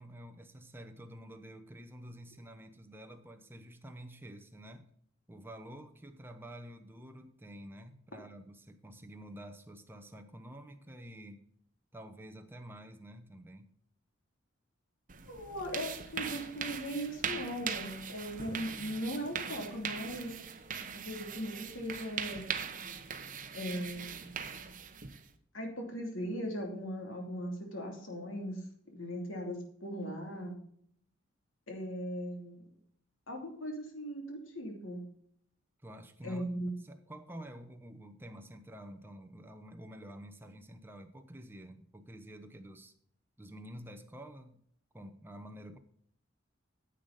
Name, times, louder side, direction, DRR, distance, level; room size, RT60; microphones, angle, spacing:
voice 1, 0.0-4.9 5.3-11.4 11.9-13.7 35.8-36.4 36.8-42.9 43.4-44.6 44.9-45.8, equal, 10° right, 5 dB, 0.8 m, -49 dB
sound 1, 15.1-25.3, right 7 dB, 45° right, 1.0 m, -41 dB
voice 2, 15.2-20.3 21.0-22.5 23.5-24.4 25.5-30.6 31.7-32.7 33.3-35.0 36.2-36.7, equal, 70° left, 2 dB, 2.9 m, -39 dB
10.0 x 8.2 x 4.1 m, 0.65 s
head